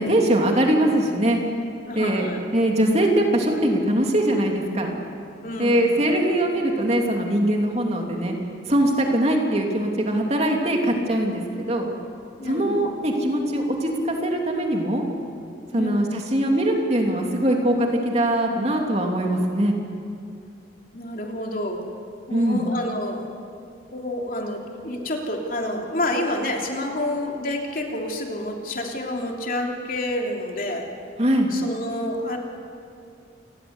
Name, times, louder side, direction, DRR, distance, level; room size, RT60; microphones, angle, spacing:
voice 1, 0.0-1.4 1.9-5.0 5.6-8.4 8.7-11.9 12.4-15.0 15.7-19.7 22.3-22.6 31.2-31.5, right 1 dB, 35° right, 1 dB, 3.2 m, -22 dB
voice 2, 1.9-2.4 5.4-6.0 12.4-12.9 15.7-16.1 20.9-21.9 22.3-23.3 23.9-30.9 31.5-32.4, left 1 dB, 50° left, 1 dB, 3.2 m, -29 dB
28.5 x 21.0 x 8.2 m, 2.4 s
head